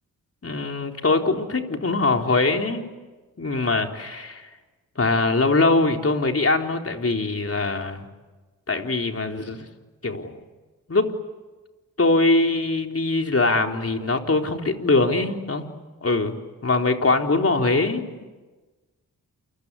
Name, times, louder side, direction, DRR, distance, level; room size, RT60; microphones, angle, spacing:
voice 1, 0.4-2.9 3.4-4.5 5.0-8.1 8.7-9.6 10.0-10.4 10.9-11.1 12.0-15.7 16.0-18.1, left 3 dB, 40° left, 3 dB, 4.0 m, -22 dB
29.0 x 24.5 x 8.4 m, 1.3 s
supercardioid pair, 45°, 37 cm